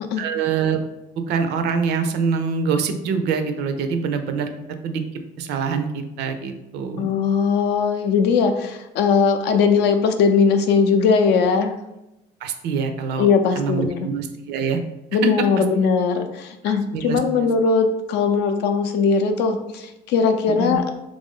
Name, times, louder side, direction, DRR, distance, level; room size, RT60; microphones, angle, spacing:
voice 1, 0.2-0.8 1.2-4.5 4.8-5.0 5.4-7.1 12.4-13.3 13.6-14.8 16.7-17.2 20.6-20.8, right 5 dB, 80° right, 7 dB, 0.5 m, -24 dB
voice 2, 7.0-11.7 13.2-14.0 15.1-20.9, left 5 dB, 80° left, 7 dB, 0.5 m, -19 dB
3.1 x 2.5 x 3.6 m, 0.91 s
cardioid pair, 110°, 17 cm